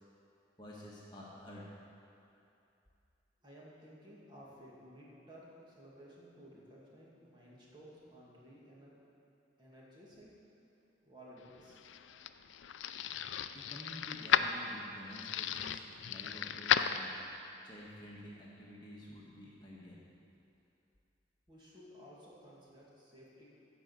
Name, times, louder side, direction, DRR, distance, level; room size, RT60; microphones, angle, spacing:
voice 1, 0.6-1.7 13.5-17.1 17.6-20.0, left 1 dB, 25° left, -5 dB, 1.4 m, -50 dB
voice 2, 3.4-8.9 9.6-10.3 11.0-11.8 21.5-23.5, equal, 25° right, -6 dB, 2.5 m, -55 dB
sound 1, 11.5-17.5, left 8 dB, 80° left, 0.4 m, -34 dB
14.0 x 5.2 x 8.3 m, 2.7 s
head